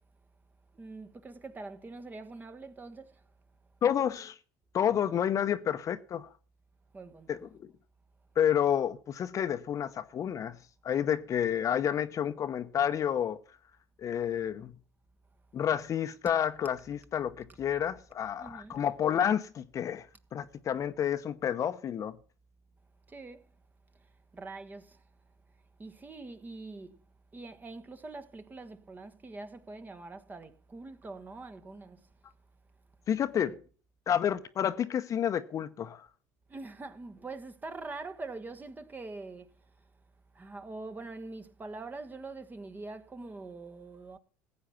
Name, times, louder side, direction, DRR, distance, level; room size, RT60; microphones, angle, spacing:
voice 1, 0.7-3.2 6.9-7.4 18.4-18.8 23.1-23.5 23.9-25.0 25.8-27.0 27.3-32.1 33.4-33.6 36.5-39.7 40.3-44.2, right 3 dB, 20° right, 1.3 m, -44 dB
voice 2, 3.8-4.4 4.7-6.3 7.3-7.7 8.4-10.6 10.8-13.4 14.0-14.7 15.5-20.1 20.3-22.2 33.1-33.5 34.1-36.1, left 9 dB, 40° left, 0.9 m, -30 dB
15.0 x 8.2 x 5.8 m
hypercardioid pair, 75°, 8 cm